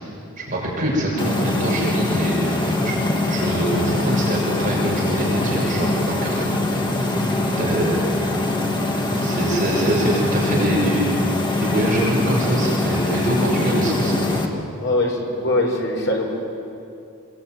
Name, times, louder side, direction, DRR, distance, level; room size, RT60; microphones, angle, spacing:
voice 1, 0.4-3.0 3.2-6.5 7.6-8.1 9.2-11.1 11.6-14.4, right 1 dB, 35° right, -4 dB, 6.7 m, -24 dB
sound 1, 1.2-14.5, left 2 dB, 20° left, 2.1 m, -23 dB
voice 2, 14.8-16.3, left 1 dB, 55° left, 0 dB, 5.6 m, -22 dB
27.5 x 22.5 x 9.4 m, 2.6 s
head